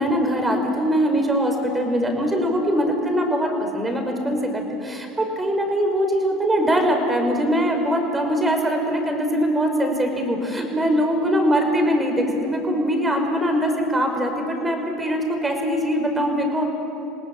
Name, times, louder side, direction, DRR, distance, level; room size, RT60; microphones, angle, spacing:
voice 1, 0.0-16.6, equal, 15° right, 3 dB, 5.8 m, -22 dB
28.5 x 18.5 x 8.9 m, 2.8 s
hypercardioid pair, 85°, 0 cm